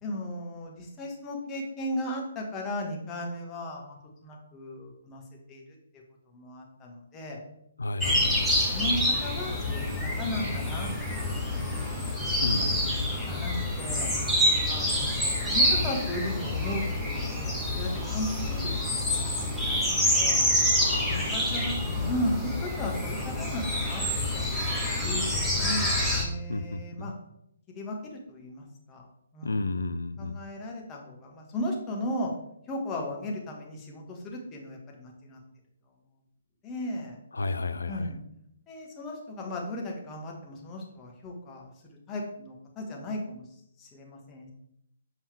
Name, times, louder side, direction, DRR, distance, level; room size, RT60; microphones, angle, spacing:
voice 1, 0.0-5.2 5.5-5.6 5.9-7.4 8.1-12.1 12.6-12.7 13.2-14.1 14.7-18.9 19.2-20.5 21.0-21.8 22.1-24.0 24.3-24.4 25.0-27.1 27.7-29.0 29.3-29.7 30.2-32.3 32.7-35.4 36.6-37.2 37.9-38.2 38.7-43.4 43.8-44.5, left 1 dB, 20° left, -1 dB, 1.4 m, -36 dB
voice 2, 7.8-8.4 12.4-13.2 20.8-22.4 26.5-27.1 29.4-30.4 37.3-38.1, left 3 dB, 65° left, 11 dB, 0.5 m, -33 dB
sound 1, 8.0-26.2, left 1 dB, ahead, 1.2 m, -27 dB
7.3 x 5.3 x 3.5 m, 0.78 s
figure-of-eight pair, 130°, 0 cm